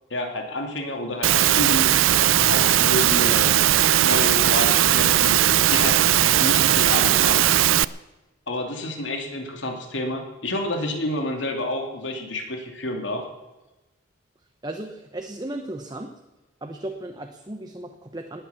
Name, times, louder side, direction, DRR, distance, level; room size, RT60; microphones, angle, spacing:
voice 1, 0.1-2.0 2.5-5.4 5.7-6.0 6.4-7.5 8.5-13.2, left 1 dB, 65° left, 3 dB, 2.8 m, -29 dB
Engine / Mechanisms, 1.2-7.8, right 12 dB, 85° right, 0.4 m, -18 dB
voice 2, 14.6-16.1 16.6-18.4, right 1 dB, 20° right, 4 dB, 1.0 m, -35 dB
19.0 x 9.4 x 7.2 m, 1.1 s
head